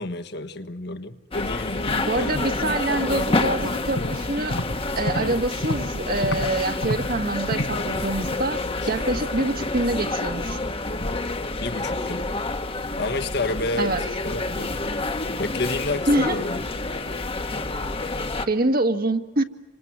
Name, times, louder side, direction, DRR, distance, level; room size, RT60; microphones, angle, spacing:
voice 1, 0.0-3.8 11.6-12.3 13.0-13.9 14.2-14.7 15.4-16.6, left 2 dB, 65° left, 1.5 m, -30 dB
sound 1, 1.3-18.5, left 2 dB, 30° left, 1.2 m, -28 dB
voice 2, 2.1-4.6 5.0-10.6 13.8-14.1 16.1-16.4 18.5-19.4, right 2 dB, 55° right, 1.7 m, -25 dB
sound 2, 3.9-6.5 6.8-7.9 8.2-8.5 8.8-9.0, equal, 80° left, 5.6 m, -30 dB
28.5 x 26.0 x 7.6 m
head